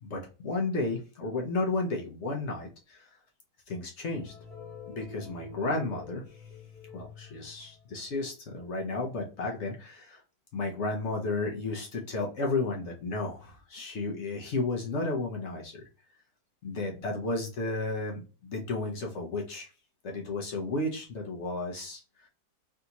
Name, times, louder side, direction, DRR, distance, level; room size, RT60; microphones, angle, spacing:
voice 1, 0.0-3.1 3.7-4.3 4.9-6.4 6.9-10.2 10.5-15.8 16.6-19.7 20.0-22.3, left 3 dB, 55° left, 1 dB, 0.8 m, -33 dB
sound 1, 4.1-8.2, left 5 dB, ahead, 1.0 m, -47 dB
3.4 x 2.7 x 2.8 m, 0.34 s
omnidirectional pair, 1.8 m